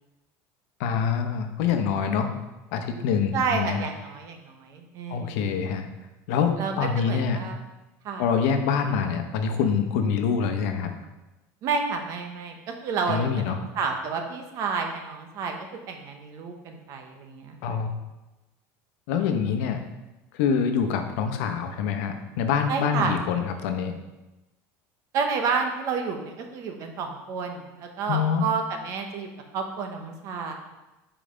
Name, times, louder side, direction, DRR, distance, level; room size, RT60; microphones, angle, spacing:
voice 1, 0.8-2.3 2.7-3.8 5.1-5.8 6.3-7.4 8.2-10.9 13.1-13.6 17.6-17.9 19.1-19.8 20.3-23.9 28.1-28.4, left 6 dB, 80° left, 6 dB, 0.8 m, -25 dB
voice 2, 3.3-5.4 6.6-7.6 8.0-8.2 11.6-15.6 15.9-17.8 22.7-23.1 25.1-30.5, right 5 dB, 45° right, 4 dB, 1.0 m, -30 dB
5.4 x 4.9 x 5.0 m, 1.0 s
cardioid pair, 155°, 7 cm